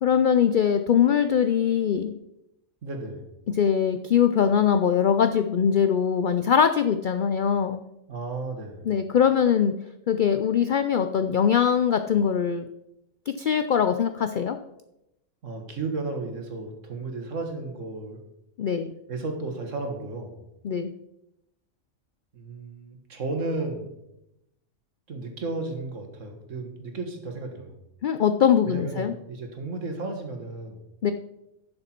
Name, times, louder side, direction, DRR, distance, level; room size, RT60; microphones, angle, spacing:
voice 1, 0.0-2.1 3.6-7.8 8.9-9.7 10.1-12.7 13.3-14.6 18.6-18.9 20.6-20.9 28.0-29.1 31.0-31.1, left 8 dB, 85° left, 8 dB, 0.4 m, -22 dB
voice 2, 2.8-3.3 8.1-8.9 15.4-18.2 19.1-20.4 22.3-24.0 25.1-27.8 28.6-30.8, right 3 dB, 65° right, 4 dB, 1.8 m, -34 dB
11.0 x 6.6 x 4.4 m, 0.87 s
omnidirectional pair, 1.4 m